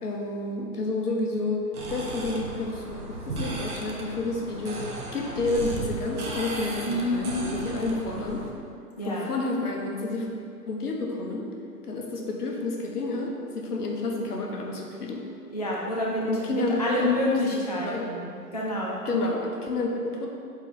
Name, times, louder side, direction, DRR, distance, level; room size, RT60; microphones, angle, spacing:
voice 1, 0.0-1.6 1.9-8.5 9.0-10.3 10.7-11.5 11.8-15.2 16.2-18.1 19.0-20.3, left 2 dB, 70° left, 0 dB, 1.4 m, -30 dB
sound 1, 1.7-8.5, right 3 dB, 70° right, 1.5 m, -36 dB
voice 2, 6.9-7.5 9.0-9.3 15.5-16.2 16.8-18.3 18.5-19.2, left 1 dB, 30° left, -4 dB, 0.3 m, -28 dB
7.9 x 4.3 x 4.2 m, 2.4 s
hypercardioid pair, 140°, 48 cm